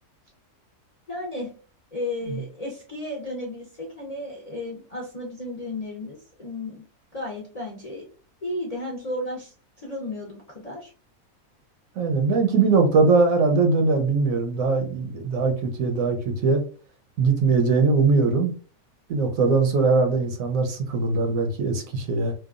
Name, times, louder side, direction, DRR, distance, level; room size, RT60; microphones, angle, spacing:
voice 1, 1.1-1.5 1.9-6.8 7.1-8.0 8.4-10.9, left 1 dB, 45° left, -3 dB, 0.5 m, -33 dB
voice 2, 12.0-16.6 17.2-18.5 19.1-22.3, right 4 dB, 70° right, 5 dB, 1.0 m, -21 dB
2.9 x 2.2 x 2.4 m, 0.39 s
omnidirectional pair, 1.6 m